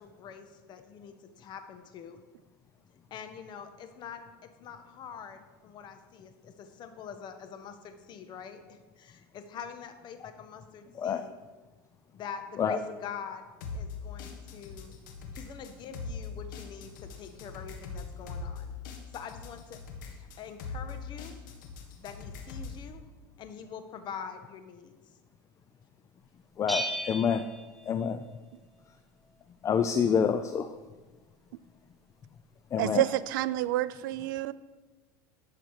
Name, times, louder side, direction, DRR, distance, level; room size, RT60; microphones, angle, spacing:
voice 1, 0.0-2.2 3.1-11.4 12.1-13.4 13.7-14.9 15.3-18.8 19.1-19.8 20.2-21.4 22.0-23.1 23.4-25.0, left 7 dB, 45° left, 8 dB, 1.2 m, -44 dB
voice 2, 10.9-11.3 12.6-12.8 26.6-27.4 27.8-28.2 29.6-30.8 32.7-33.0, left 7 dB, 30° left, 10 dB, 0.5 m, -27 dB
sound 1, 13.6-22.8, left 4 dB, 75° left, 1.7 m, -41 dB
Bell, 26.7-28.5, right 1 dB, ahead, 1.3 m, -36 dB
voice 3, 32.8-34.5, right 15 dB, 75° right, 17 dB, 0.4 m, -28 dB
11.5 x 6.6 x 4.8 m, 1.3 s
supercardioid pair, 105°, 11 cm